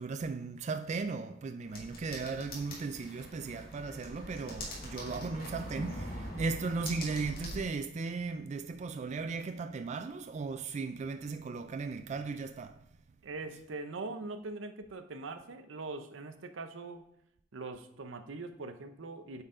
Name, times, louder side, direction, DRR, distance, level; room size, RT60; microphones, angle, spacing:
voice 1, 0.0-12.8, right 4 dB, 35° right, 0.3 m, -36 dB
sound 1, 1.7-7.7, left 1 dB, 50° left, 2.2 m, -43 dB
voice 2, 13.2-17.0 17.5-19.4, right 3 dB, 85° right, 0.7 m, -42 dB
8.7 x 4.5 x 3.7 m
head